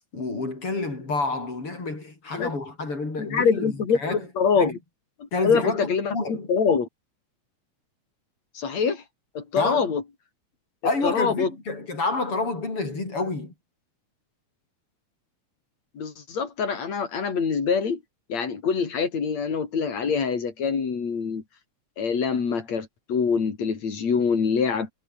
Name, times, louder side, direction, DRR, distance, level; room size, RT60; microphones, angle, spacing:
voice 1, 0.1-4.3 4.6-4.7 5.3-6.5 9.5-9.9 10.8-13.5, left 3 dB, 45° left, 7.9 m, -29 dB
voice 2, 3.2-4.8 5.2-6.9 8.5-9.0 9.3-10.0 11.0-11.5 15.9-18.0 18.3-21.4 22.0-24.9, left 6 dB, 65° left, 5.0 m, -25 dB
omnidirectional pair, 3.3 m